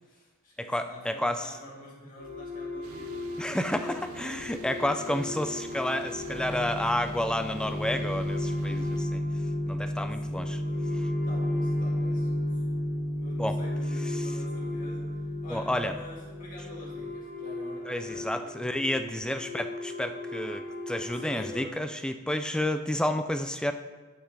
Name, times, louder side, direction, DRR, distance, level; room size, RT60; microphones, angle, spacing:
voice 1, 0.0-4.4 4.9-5.4 10.7-10.9 11.2-12.8 13.1-18.7 21.1-21.8, equal, 40° left, -5 dB, 2.6 m, -48 dB
voice 2, 0.6-1.5 3.4-9.2 9.7-10.6 13.4-13.5 15.5-15.9 17.9-23.7, left 1 dB, 5° left, 8 dB, 0.3 m, -30 dB
sound 1, 2.2-21.5, left 1 dB, 80° left, 2.8 m, -33 dB
sound 2, 2.8-9.1, right 3 dB, 70° right, 0.6 m, -48 dB
12.5 x 5.8 x 3.3 m, 1.3 s
head